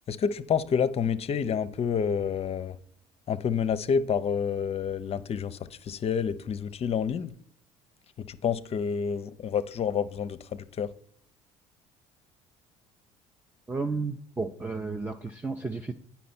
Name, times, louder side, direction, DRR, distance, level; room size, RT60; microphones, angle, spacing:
voice 1, 0.1-2.8 3.3-7.3 8.2-10.9, left 7 dB, 40° left, 0.6 m, -28 dB
voice 2, 13.7-15.9, right 3 dB, 10° right, 0.6 m, -32 dB
9.3 x 5.7 x 4.3 m
hypercardioid pair, 70°, 15 cm